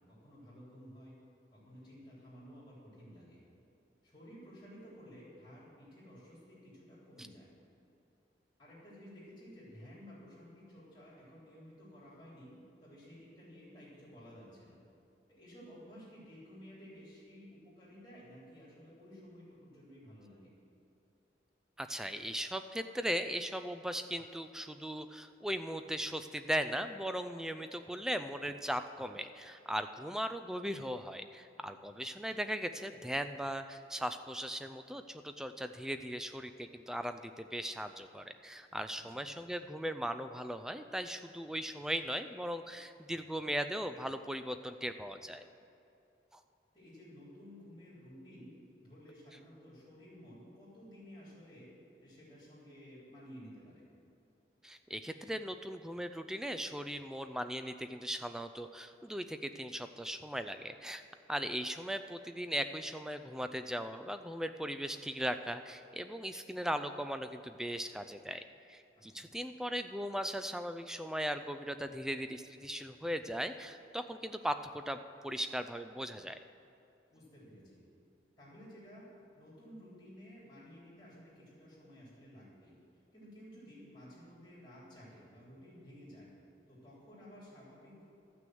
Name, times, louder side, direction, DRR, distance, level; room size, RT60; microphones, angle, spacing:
voice 1, 0.1-1.1 1.5-3.4 4.0-7.5 8.6-12.5 12.8-14.8 15.3-20.5 38.9-39.2 46.7-48.5 48.8-51.7 52.0-53.8 69.0-69.3 77.1-77.8 78.4-82.7 83.1-86.3 86.7-88.0, equal, 20° left, -8 dB, 3.2 m, -54 dB
voice 2, 21.8-45.4 46.3-46.4 54.6-61.0 61.3-76.4, equal, 5° right, 9 dB, 0.3 m, -38 dB
13.0 x 6.1 x 7.7 m, 2.7 s
head